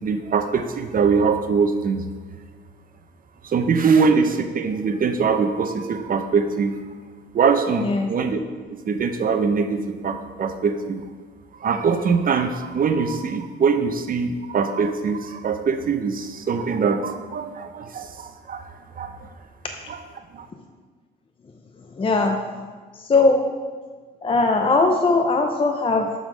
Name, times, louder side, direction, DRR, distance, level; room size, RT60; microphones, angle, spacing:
voice 1, 0.0-2.0 3.4-6.8 7.3-8.4 8.9-11.0 11.6-18.7 19.0-19.2 19.9-20.0 20.3-20.5, right 5 dB, 45° right, 7 dB, 0.7 m, -22 dB
voice 2, 7.8-8.1 21.8-22.5 22.9-23.5 24.2-26.1, left 3 dB, 25° left, 4 dB, 0.6 m, -20 dB
6.8 x 3.8 x 6.1 m, 1.5 s
cardioid pair, 90°, 20 cm